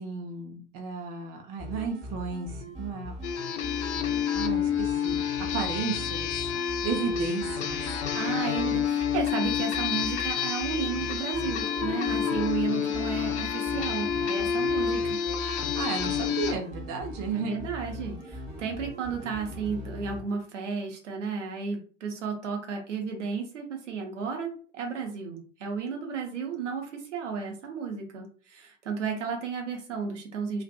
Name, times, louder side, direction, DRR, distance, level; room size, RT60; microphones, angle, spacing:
voice 1, 0.0-3.2 4.3-6.3 6.8-7.8 15.7-17.6, right 5 dB, 40° right, 2 dB, 0.6 m, -33 dB
sound 1, 1.6-20.2, left 1 dB, 20° right, 1.0 m, -40 dB
sound 2, 3.2-16.5, left 8 dB, 65° left, 0.5 m, -29 dB
voice 2, 8.1-15.2 17.3-30.6, right 6 dB, 75° right, 2 dB, 0.8 m, -33 dB
2.6 x 2.4 x 2.2 m, 0.40 s
figure-of-eight pair, 80°, 37 cm